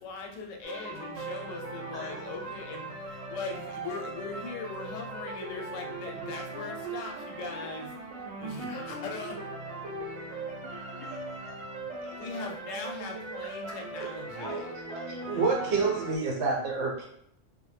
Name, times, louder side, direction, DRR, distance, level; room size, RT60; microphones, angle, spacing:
voice 1, 0.0-7.9 8.4-9.4 12.0-14.6 15.3-15.5, left 4 dB, 85° left, 1 dB, 0.9 m, -40 dB
sound 1, 0.6-16.2, right 3 dB, 90° right, 1.0 m, -39 dB
voice 2, 10.7-11.6 13.7-15.3, equal, ahead, -7 dB, 0.6 m, -45 dB
voice 3, 15.3-17.0, right 4 dB, 70° right, -1 dB, 0.9 m, -27 dB
2.2 x 2.0 x 3.1 m, 0.70 s
omnidirectional pair, 1.3 m